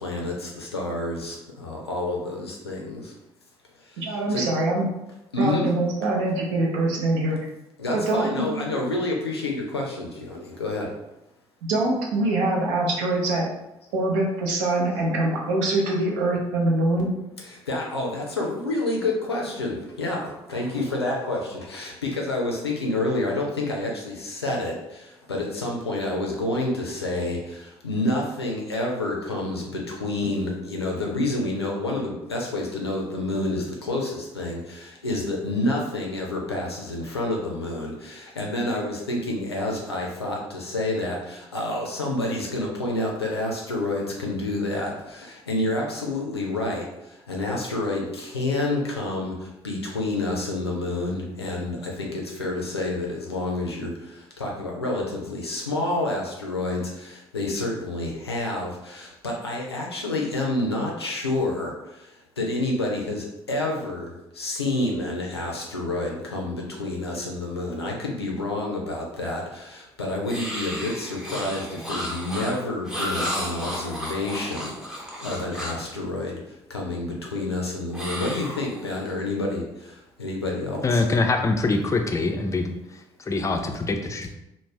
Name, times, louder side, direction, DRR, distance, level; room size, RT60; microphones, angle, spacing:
voice 1, 0.0-1.4 1.6-3.0 4.3-4.5 5.3-5.6 7.8-10.9 17.7-24.7 25.3-27.4 27.8-29.6 30.0-34.6 35.0-41.2 41.5-44.9 45.5-46.8 47.3-49.3 49.6-52.1 52.4-53.9 54.4-56.8 57.3-61.7 62.4-64.1 64.4-69.4 70.0-74.7 75.2-76.4 76.7-79.6 80.2-81.0, left 2 dB, 85° left, -1 dB, 0.4 m, -28 dB
voice 2, 4.0-4.9 5.4-7.4 7.9-8.5 11.6-13.4 13.9-17.1, right 2 dB, 65° right, -1 dB, 0.6 m, -24 dB
sound 1, 70.3-75.9 77.9-79.1, equal, 5° right, 0.8 m, -33 dB
voice 3, 80.8-82.7 83.2-84.3, left 3 dB, 25° left, 4 dB, 0.4 m, -24 dB
2.4 x 2.0 x 3.2 m, 0.91 s
figure-of-eight pair, 45°, 13 cm